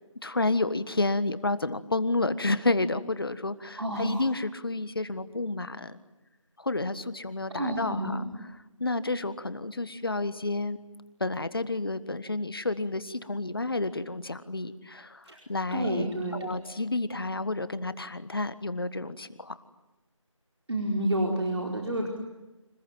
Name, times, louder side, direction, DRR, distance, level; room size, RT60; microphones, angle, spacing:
voice 1, 0.2-6.0 6.6-8.2 8.8-10.8 11.2-19.6, left 2 dB, 45° left, 14 dB, 1.5 m, -30 dB
voice 2, 3.8-4.2 7.5-8.2 15.2-15.4 15.7-16.6 20.7-22.1, right 1 dB, 55° right, 0 dB, 4.7 m, -29 dB
29.5 x 27.0 x 7.5 m, 1.1 s
figure-of-eight pair, 170°, 17 cm